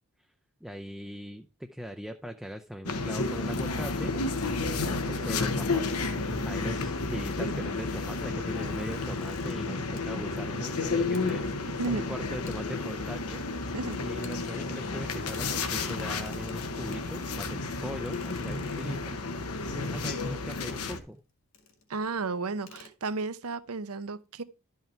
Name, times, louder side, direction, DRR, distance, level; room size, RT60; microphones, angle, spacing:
voice 1, 0.6-4.1 4.6-6.0 6.4-13.4 14.0-19.2 19.7-21.2, equal, ahead, 0.4 m, -40 dB
sound 1, 2.9-21.0, left 3 dB, 90° left, 1.1 m, -32 dB
sound 2, 8.4-10.7 11.1-11.3 11.8-11.9 12.3-13.3 13.6-15.0 15.2-17.1 18.1-19.3 20.5-21.2 21.5-21.9 22.2-22.3 22.6-22.9, left 4 dB, 60° left, 1.9 m, -50 dB
voice 2, 21.9-24.4, right 3 dB, 85° right, 0.8 m, -33 dB
12.0 x 5.6 x 4.5 m
head